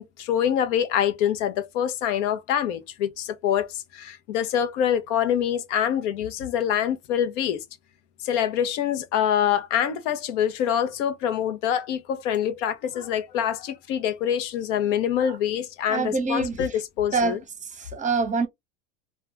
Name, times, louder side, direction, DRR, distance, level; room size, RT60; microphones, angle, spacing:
voice 1, 0.0-7.6 8.2-17.4, left 9 dB, 75° left, 0.7 m, -25 dB
voice 2, 15.9-16.6 17.1-17.4 17.6-18.5, right 4 dB, 20° right, 0.7 m, -25 dB
2.4 x 2.2 x 3.0 m
supercardioid pair, 105°, 36 cm